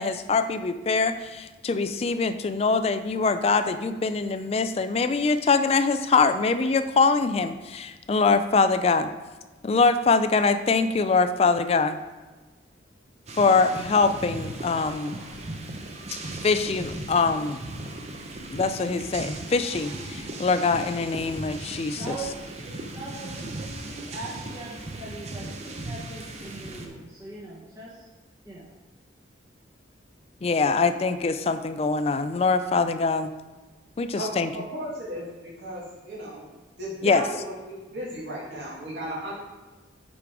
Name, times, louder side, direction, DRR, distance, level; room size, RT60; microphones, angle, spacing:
voice 1, 0.0-9.1 9.6-12.0 13.4-15.2 16.4-17.6 18.5-22.2 30.4-33.3 34.0-34.5 37.0-37.2, left 4 dB, 30° left, 10 dB, 0.3 m, -23 dB
sound 1, 13.3-26.9, right 2 dB, 35° right, 0.6 m, -37 dB
voice 2, 21.9-28.1 28.4-28.7, right 3 dB, 20° right, -8 dB, 1.1 m, -40 dB
voice 3, 34.7-36.4 36.8-39.3, equal, 65° right, -6 dB, 2.4 m, -35 dB
5.8 x 5.0 x 4.7 m, 1.2 s
head